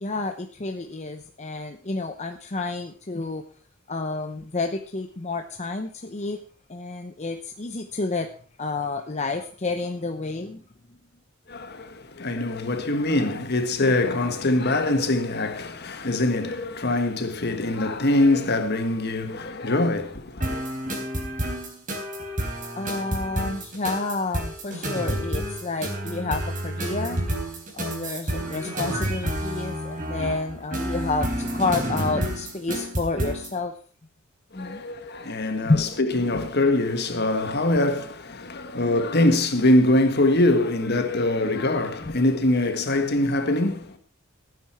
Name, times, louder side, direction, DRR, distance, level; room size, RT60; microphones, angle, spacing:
voice 1, 0.0-3.4 3.9-6.4 6.7-8.3 8.6-10.6 22.8-27.4 27.7-33.7 34.5-34.8 35.6-35.9, left 3 dB, 35° left, 0.8 m, -29 dB
voice 2, 11.5-20.6 34.5-44.0, left 2 dB, 50° left, 1.6 m, -23 dB
sound 1, 20.4-33.5, right 1 dB, 40° right, 4.2 m, -29 dB
16.0 x 9.5 x 4.5 m
head